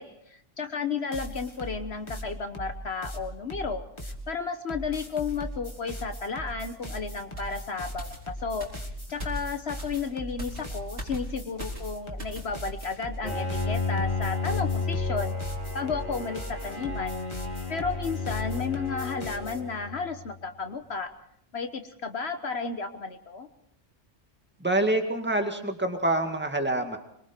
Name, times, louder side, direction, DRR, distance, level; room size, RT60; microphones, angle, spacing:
voice 1, 0.0-8.7 9.1-15.3 15.7-17.2 17.7-21.1 21.5-23.5, left 5 dB, 60° left, 8 dB, 1.4 m, -33 dB
sound 1, 1.1-4.2 4.7-19.6, equal, 25° left, 2.2 m, -39 dB
sound 2, 7.4-12.5 12.8-13.0, equal, 65° right, 4.7 m, -41 dB
Bowed string instrument, 13.2-20.3, left 4 dB, 40° left, 3.5 m, -32 dB
voice 2, 24.6-27.0, right 1 dB, 10° right, 5 dB, 2.0 m, -26 dB
26.0 x 23.0 x 4.5 m, 0.71 s
omnidirectional pair, 1.2 m